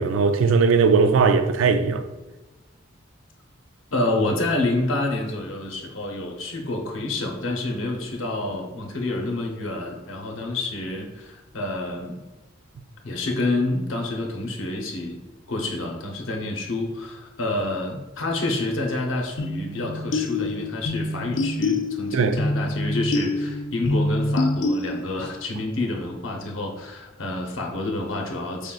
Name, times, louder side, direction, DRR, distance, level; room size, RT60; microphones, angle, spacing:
voice 1, 0.0-2.1 22.1-22.4, right 5 dB, 90° right, 0.4 m, -19 dB
voice 2, 3.9-12.2 13.0-15.2 15.5-28.7, left 2 dB, 85° left, 0.7 m, -28 dB
sound 1, 19.4-25.3, left 2 dB, 65° left, 0.4 m, -26 dB
5.0 x 3.7 x 2.3 m
head